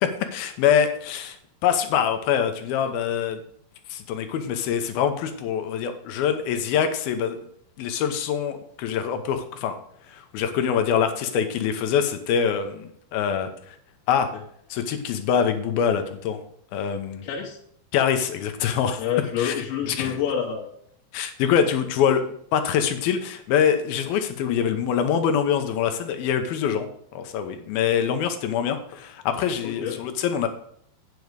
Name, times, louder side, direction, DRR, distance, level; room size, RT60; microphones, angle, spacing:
voice 1, 0.0-1.4 1.6-3.4 3.9-7.4 7.8-9.8 10.1-13.8 14.1-14.3 14.7-16.4 16.7-17.2 17.9-19.0 19.4-19.6 19.9-20.2 21.1-30.5, left 8 dB, 75° left, 7 dB, 2.4 m, -24 dB
voice 2, 17.2-17.6 19.0-20.8 29.6-30.0, left 8 dB, 90° left, -2 dB, 3.5 m, -28 dB
9.4 x 7.0 x 4.7 m, 0.67 s
omnidirectional pair, 5.0 m